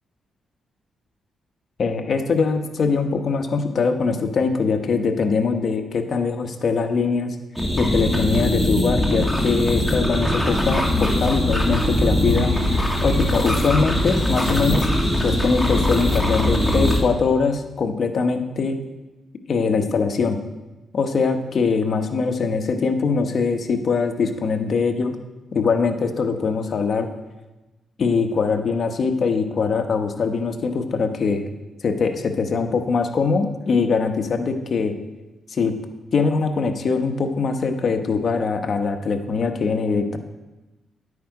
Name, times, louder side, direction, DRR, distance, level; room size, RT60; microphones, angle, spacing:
voice 1, 1.8-7.3 7.8-14.9 15.2-18.8 19.5-20.4 20.9-25.2 25.5-27.1 28.0-31.4 31.8-34.9 35.5-35.8 36.1-40.2, left 5 dB, 50° left, 5 dB, 1.0 m, -22 dB
sound 1, 7.6-17.0, left 1 dB, ahead, 1.6 m, -21 dB
sound 2, 10.5-17.1, right 2 dB, 85° right, 3.1 m, -31 dB
10.5 x 8.4 x 4.8 m, 1.1 s
cardioid pair, 115°, 0 cm